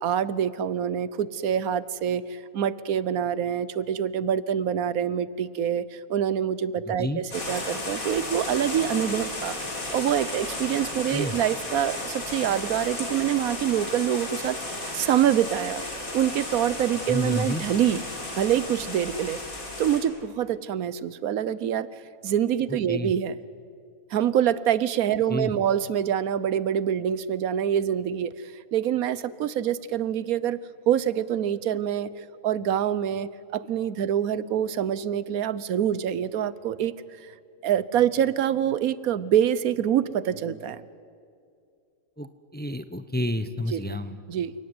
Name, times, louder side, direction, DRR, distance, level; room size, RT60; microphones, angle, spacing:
voice 1, 0.0-14.6 14.9-18.0 18.4-19.4 19.8-21.9 22.2-23.3 24.1-28.3 28.7-30.6 30.9-36.9 37.2-37.3 37.6-40.9 43.7-43.8 44.3-44.5, right 9 dB, 85° right, 18 dB, 1.3 m, -25 dB
voice 2, 6.8-7.2 11.1-11.4 17.1-17.6 22.9-23.1 25.3-25.5 42.2-44.2, left 1 dB, 10° left, 11 dB, 0.7 m, -30 dB
sound 1, 7.3-20.0, left 2 dB, 80° left, 4.4 m, -34 dB
29.0 x 18.5 x 9.7 m, 2.3 s
omnidirectional pair, 1.5 m